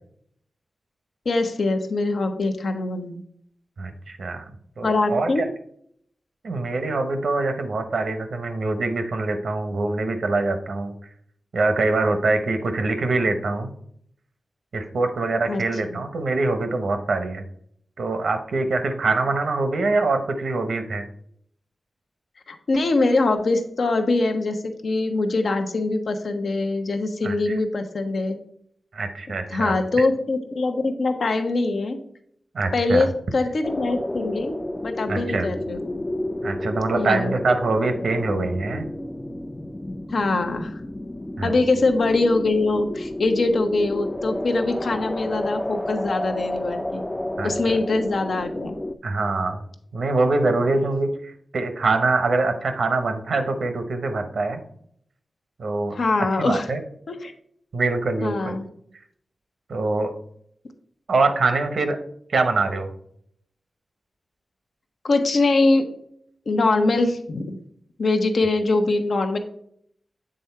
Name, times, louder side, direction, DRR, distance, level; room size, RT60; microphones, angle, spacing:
voice 1, 1.2-3.2 4.8-5.4 15.5-15.6 15.9-16.0 22.5-28.4 29.5-32.0 32.7-34.6 34.8-35.8 36.9-37.3 40.1-40.7 41.4-47.0 47.4-48.8 55.9-56.7 57.1-57.3 58.2-58.7 65.0-65.8 66.5-67.6 68.0-69.4, left 3 dB, 70° left, 6 dB, 0.8 m, -23 dB
voice 2, 3.8-4.4 4.8-5.5 6.4-10.9 11.5-13.7 14.7-17.4 18.0-21.1 27.2-27.6 28.9-29.7 32.5-33.1 35.1-35.5 36.4-38.9 41.4-41.5 47.4-47.8 49.0-49.6 49.9-54.6 55.6-56.8 57.7-58.6 59.7-60.1 61.1-62.0 62.3-62.9, right 3 dB, 80° right, 7 dB, 0.8 m, -24 dB
sound 1, 33.6-49.0, left 1 dB, 20° left, 0.4 m, -31 dB
7.8 x 3.7 x 4.4 m, 0.68 s
cardioid pair, 50°, 0 cm